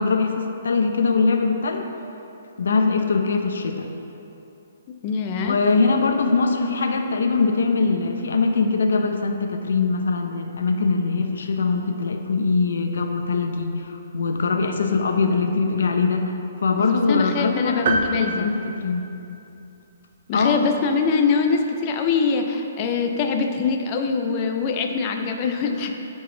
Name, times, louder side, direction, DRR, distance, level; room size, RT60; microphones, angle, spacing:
voice 1, 0.0-1.9 2.6-3.9 5.5-19.1 20.3-20.6, left 4 dB, 85° left, 5 dB, 0.7 m, -22 dB
voice 2, 5.0-5.6 16.8-18.5 20.3-25.9, left 5 dB, 25° left, 4 dB, 0.5 m, -23 dB
sound 1, 17.9-19.6, right 3 dB, 45° right, 0.5 m, -27 dB
10.5 x 4.0 x 3.8 m, 2.8 s
hypercardioid pair, 170°, 0 cm